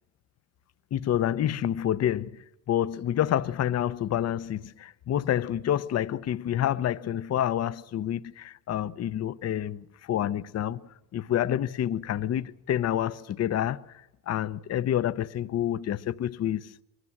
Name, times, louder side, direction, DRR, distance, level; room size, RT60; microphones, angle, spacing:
voice 1, 0.9-2.4 2.7-10.8 11.1-13.8 14.3-16.7, left 11 dB, 35° left, 0.7 m, -28 dB
23.0 x 18.0 x 7.3 m
hypercardioid pair, 65°, 48 cm